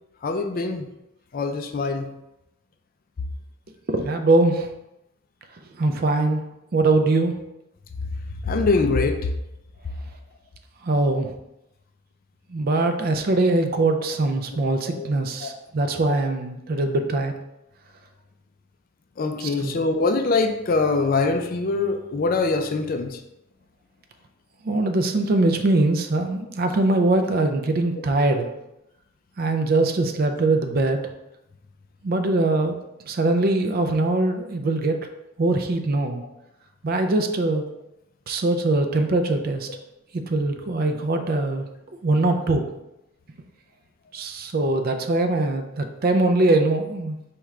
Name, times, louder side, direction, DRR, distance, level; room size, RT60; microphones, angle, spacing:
voice 1, 0.2-0.9 1.3-2.1 8.4-9.2 14.5-14.6 14.9-15.0 15.4-15.5 19.2-23.2 34.3-34.4, left 3 dB, 40° left, 6 dB, 0.4 m, -23 dB
voice 2, 3.9-4.7 5.8-6.4 6.7-7.4 10.8-11.3 12.5-17.3 19.4-19.8 24.6-28.5 29.4-31.0 32.0-32.8 33.1-35.1 35.4-36.2 36.8-37.6 38.3-39.7 40.1-41.7 42.0-42.7 44.1-47.2, right 2 dB, 45° right, 6 dB, 0.4 m, -22 dB
4.6 x 3.6 x 3.1 m, 0.88 s
head